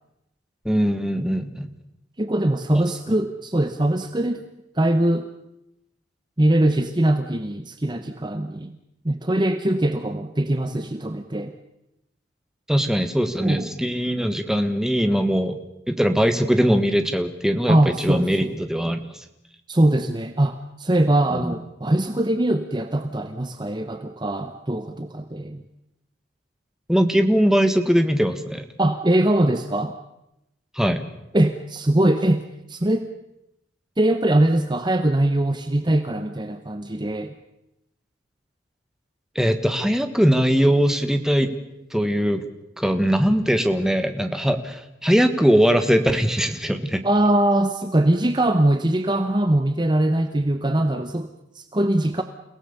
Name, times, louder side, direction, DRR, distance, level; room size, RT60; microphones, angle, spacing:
voice 1, 0.6-1.7 3.1-3.2 12.7-15.6 15.9-19.0 21.4-21.5 26.9-28.6 30.7-31.0 39.3-41.5 41.9-42.4 42.8-47.0, equal, 5° right, 8 dB, 1.5 m, -21 dB
voice 2, 2.2-4.4 4.8-5.3 6.4-8.7 9.0-11.5 13.4-13.8 17.7-18.6 19.7-25.6 28.8-29.9 31.3-32.4 32.7-33.1 34.0-37.3 47.0-52.2, right 1 dB, 25° right, 9 dB, 0.9 m, -22 dB
29.5 x 17.5 x 6.9 m, 0.89 s
head